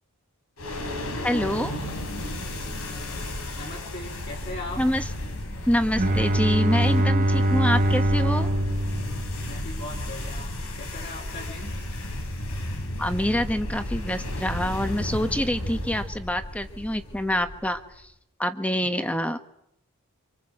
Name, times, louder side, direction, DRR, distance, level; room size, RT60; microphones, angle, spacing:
sound 1, 0.6-17.9, left 1 dB, 80° left, 4.1 m, -33 dB
voice 1, 1.2-1.7 4.8-5.0 5.7-8.5 13.0-17.8 18.4-19.4, equal, 5° left, 8 dB, 1.4 m, -26 dB
voice 2, 2.8-4.8 9.3-11.8 18.8-19.2, left 2 dB, 50° left, 0 dB, 5.3 m, -40 dB
Bowed string instrument, 6.0-9.9, right 1 dB, 35° right, 1.1 m, -23 dB
26.5 x 26.0 x 7.8 m, 0.79 s
head